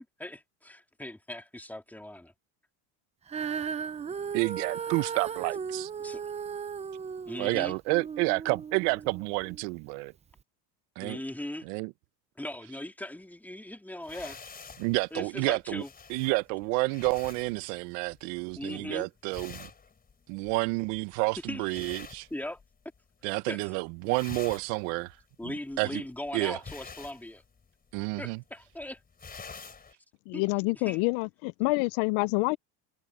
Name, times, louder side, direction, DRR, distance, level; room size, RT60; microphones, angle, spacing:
voice 1, 0.0-2.3 6.0-6.2 7.3-7.8 11.0-11.7 12.4-14.4 15.1-15.9 18.6-19.1 21.4-21.6 22.3-22.6 23.2-23.7 25.4-27.4 28.2-29.0 30.3-30.4 30.7-31.0, left 1 dB, 5° left, 2.5 m, -39 dB
Female singing, 3.3-9.6 10.3-10.4, right 6 dB, 15° right, 0.5 m, -36 dB
voice 2, 4.3-5.9 7.4-10.1 11.0-11.2 11.7-11.9 14.8-15.8 16.1-19.7 20.3-22.3 23.2-25.1 25.8-26.0 26.3-26.6 27.9-28.4, right 25 dB, 90° right, 0.8 m, -29 dB
sound 1, 14.0-23.0 23.3-23.7 24.0-29.9, left 5 dB, 20° left, 4.1 m, -48 dB
voice 3, 30.3-32.6, left 27 dB, 75° left, 0.6 m, -27 dB
cardioid pair, 150°, 47 cm